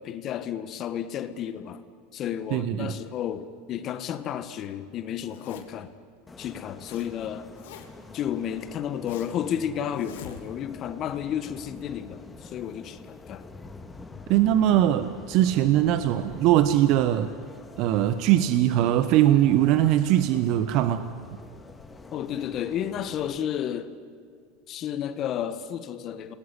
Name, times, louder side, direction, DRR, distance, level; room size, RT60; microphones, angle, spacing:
voice 1, 0.0-1.8 2.1-5.9 6.4-7.5 8.1-13.4 22.1-23.9 24.7-26.3, left 9 dB, 45° left, 1.5 m, -32 dB
voice 2, 2.5-2.9 14.3-17.3 17.8-21.0, right 12 dB, 55° right, 1.1 m, -21 dB
Zipper (clothing), 5.2-5.9 6.5-7.1 7.3-8.1 8.6-9.4 9.9-10.7, left 9 dB, 75° left, 2.7 m, -45 dB
sound 1, 6.3-23.4, left 3 dB, 15° left, 2.2 m, -46 dB
28.5 x 19.5 x 10.0 m
hypercardioid pair, 90°, 0 cm